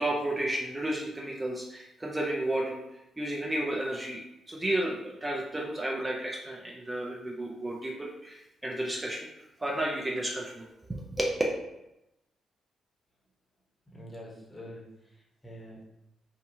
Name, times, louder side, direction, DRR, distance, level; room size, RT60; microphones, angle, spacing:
voice 1, 0.0-2.8 3.2-9.3 9.6-10.7 11.2-11.3, right 1 dB, 20° right, -2 dB, 0.5 m, -32 dB
voice 2, 13.9-15.9, equal, 25° left, -3 dB, 0.9 m, -46 dB
2.6 x 2.3 x 2.6 m, 0.88 s
hypercardioid pair, 45°, 0 cm